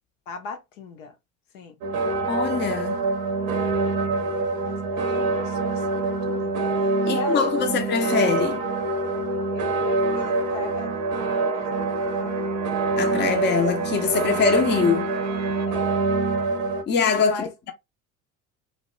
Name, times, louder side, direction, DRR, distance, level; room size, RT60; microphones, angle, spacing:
voice 1, 0.3-1.2 1.5-1.8 3.5-6.7 7.0-7.7 9.5-11.0 11.5-11.9 12.2-12.5 15.7-16.0 17.3-17.5, left 5 dB, 65° left, 0.7 m, -38 dB
sound 1, 1.8-16.8, right 3 dB, 75° right, 0.7 m, -25 dB
voice 2, 2.3-3.0 7.1-8.6 13.0-15.1 16.9-17.7, left 5 dB, 25° left, 0.6 m, -23 dB
sound 2, 10.0-15.7, right 7 dB, 40° right, 0.6 m, -38 dB
2.7 x 2.1 x 2.4 m
figure-of-eight pair, 60°, 41 cm